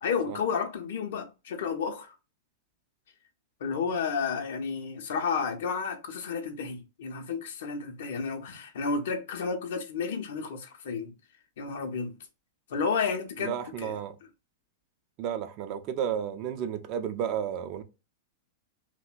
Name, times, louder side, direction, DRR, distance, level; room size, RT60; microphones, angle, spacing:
voice 1, 0.0-2.1 3.6-11.1 11.6-12.2 12.7-14.0, left 5 dB, 65° left, 0.5 m, -31 dB
voice 2, 13.4-14.2 15.2-17.8, right 8 dB, 45° right, 0.4 m, -32 dB
2.7 x 2.0 x 2.3 m
figure-of-eight pair, 95°, 0 cm